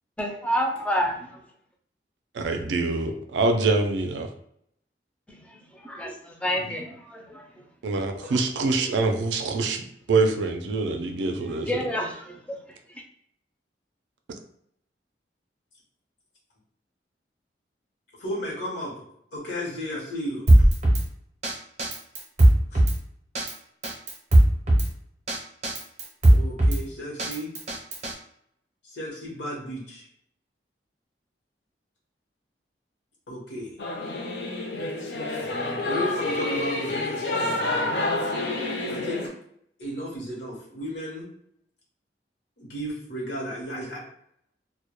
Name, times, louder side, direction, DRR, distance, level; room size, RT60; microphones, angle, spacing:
voice 1, 0.2-1.4 5.3-7.4 8.2-8.4 8.7-9.0 11.7-12.6, equal, 5° left, 1 dB, 0.3 m, -29 dB
voice 2, 2.3-4.3 7.8-11.8, right 3 dB, 85° right, 5 dB, 0.4 m, -25 dB
voice 3, 18.2-18.9 19.3-20.7 22.7-22.8 26.3-27.5 28.8-30.0 33.3-33.7 35.8-37.7 38.9-39.3 39.8-41.3 42.6-44.0, equal, 90° left, -3 dB, 0.8 m, -34 dB
Drum kit, 20.5-21.0 21.4-21.5 21.8-23.0 23.4-23.5 23.8-24.9 25.3-25.4 25.6-26.8 27.2-28.1, right 1 dB, 40° right, 0.6 m, -18 dB
Singing / Musical instrument, 33.8-39.3, left 2 dB, 70° left, 0.5 m, -28 dB
2.1 x 2.1 x 2.9 m, 0.70 s
head